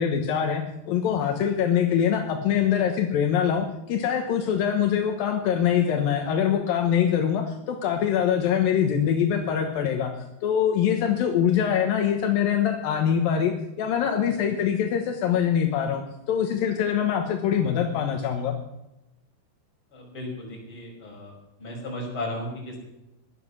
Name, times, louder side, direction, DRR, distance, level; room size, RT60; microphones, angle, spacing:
voice 1, 0.0-10.1 10.4-16.0 16.3-18.5, left 8 dB, 70° left, 4 dB, 2.3 m, -24 dB
voice 2, 19.9-21.3 21.6-22.8, left 1 dB, 25° left, -2 dB, 6.2 m, -35 dB
16.5 x 12.0 x 6.2 m, 0.91 s
omnidirectional pair, 5.6 m